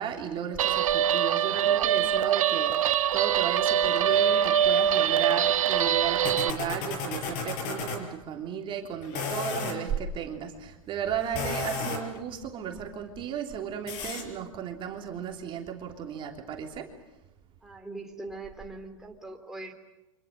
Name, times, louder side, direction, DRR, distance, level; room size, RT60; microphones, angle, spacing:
voice 1, 0.0-16.9, right 8 dB, 30° right, 3 dB, 3.2 m, -34 dB
Guitar, 0.6-6.5, right 9 dB, 75° right, 1.4 m, -24 dB
sound 1, 3.9-8.0 9.0-9.8 11.2-12.2 13.9-14.2, left 4 dB, 45° left, 5.5 m, -35 dB
voice 2, 17.6-19.7, right 2 dB, 5° right, 1 dB, 3.3 m, -41 dB
29.0 x 26.0 x 7.7 m, 0.95 s
hypercardioid pair, 125°, 17 cm